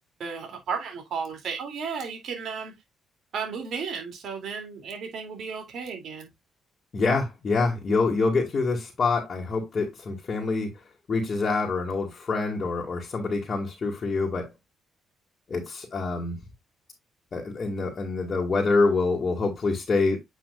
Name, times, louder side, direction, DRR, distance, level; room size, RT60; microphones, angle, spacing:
voice 1, 0.2-2.7 3.3-6.3, right 5 dB, 65° right, 2.6 m, -34 dB
voice 2, 6.9-10.7 11.1-14.5 15.5-16.4 17.3-20.2, left 3 dB, 40° left, 2.0 m, -26 dB
8.4 x 5.5 x 2.4 m
cardioid pair, 90°, 0 cm